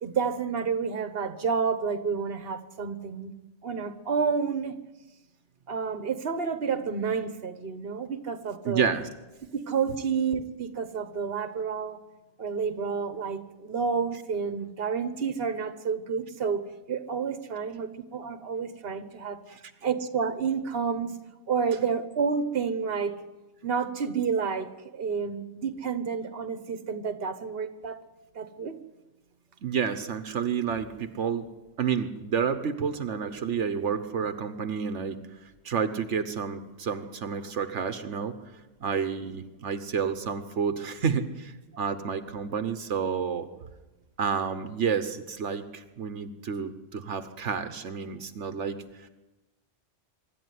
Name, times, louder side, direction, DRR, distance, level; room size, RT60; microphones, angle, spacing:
voice 1, 0.0-3.3 3.6-4.8 5.7-8.9 9.5-12.0 12.4-16.6 16.9-19.4 19.8-21.2 21.5-23.1 23.6-28.0 28.3-28.8, right 6 dB, 55° right, 10 dB, 1.5 m, -30 dB
voice 2, 8.6-9.1 19.5-19.6 29.6-31.5 31.8-35.2 35.6-38.4 38.8-43.5 44.2-49.1, right 6 dB, 85° right, 9 dB, 1.4 m, -30 dB
24.5 x 12.5 x 9.5 m, 1.1 s
omnidirectional pair, 1.2 m